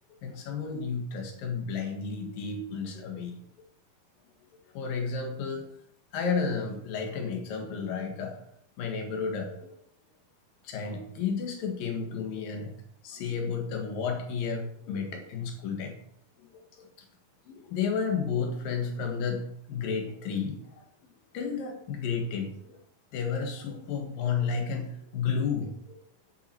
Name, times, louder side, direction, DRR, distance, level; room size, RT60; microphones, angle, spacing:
voice 1, 0.2-3.4 4.7-5.7 6.1-8.4 8.8-9.7 10.6-12.8 13.0-16.0 16.4-16.5 16.7-16.9 17.5-20.8 21.3-22.8 23.1-26.0, left 5 dB, 70° left, 3 dB, 3.3 m, -32 dB
11.0 x 7.4 x 4.5 m, 0.68 s
omnidirectional pair, 4.2 m